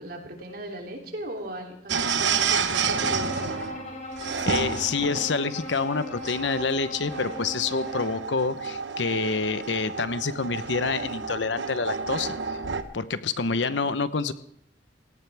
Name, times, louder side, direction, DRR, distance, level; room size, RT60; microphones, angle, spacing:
voice 1, 0.0-3.7 13.4-13.9, right 1 dB, 55° right, 1 dB, 3.2 m, -38 dB
sound 1, 1.9-12.8, right 5 dB, 90° right, 1.1 m, -30 dB
Bowed string instrument, 2.8-8.2, left 1 dB, 40° left, 4.3 m, -38 dB
voice 2, 4.5-12.6 12.9-14.3, left 4 dB, 80° left, 12 dB, 0.9 m, -27 dB
18.0 x 17.5 x 3.5 m, 0.74 s
head